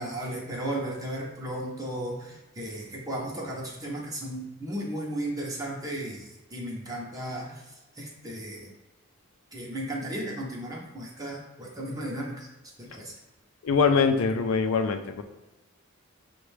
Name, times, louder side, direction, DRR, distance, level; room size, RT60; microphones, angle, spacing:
voice 1, 0.0-8.7 9.5-12.5 12.8-13.1, right 1 dB, 15° right, -2 dB, 0.6 m, -35 dB
voice 2, 13.6-15.2, left 5 dB, 85° left, 7 dB, 0.4 m, -23 dB
5.9 x 2.2 x 3.2 m, 1.1 s
head